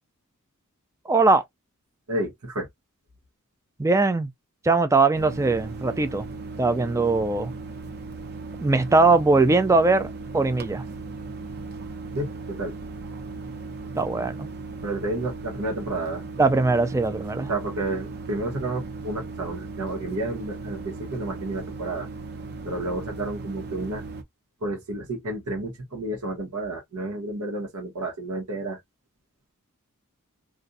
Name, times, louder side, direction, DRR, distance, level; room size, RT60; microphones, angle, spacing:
voice 1, 1.1-1.4 3.8-4.3 4.6-6.3 6.6-7.5 8.6-10.8 14.0-14.5 16.4-17.5, right 3 dB, 15° right, 0.3 m, -21 dB
voice 2, 2.1-2.7 12.1-12.7 14.8-16.2 17.5-22.1 22.6-24.0 24.6-28.8, right 2 dB, 80° right, 1.1 m, -31 dB
sound 1, 5.1-24.2, right 3 dB, 45° right, 0.8 m, -37 dB
2.5 x 2.3 x 3.9 m
head